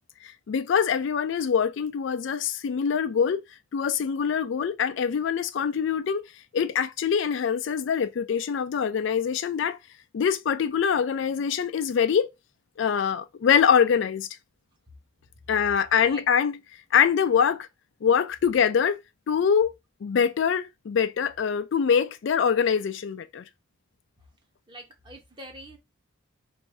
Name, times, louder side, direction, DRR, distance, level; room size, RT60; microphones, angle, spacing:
voice 1, 0.2-3.4 3.7-6.2 6.5-9.8 10.1-12.3 12.8-14.3 15.5-16.6 16.9-17.7 18.0-19.0 19.3-19.7 20.0-23.4, left 7 dB, 60° left, 0.3 m, -24 dB
voice 2, 15.8-16.2 24.7-25.8, right 1 dB, 20° right, 1.0 m, -45 dB
3.2 x 2.6 x 4.4 m
head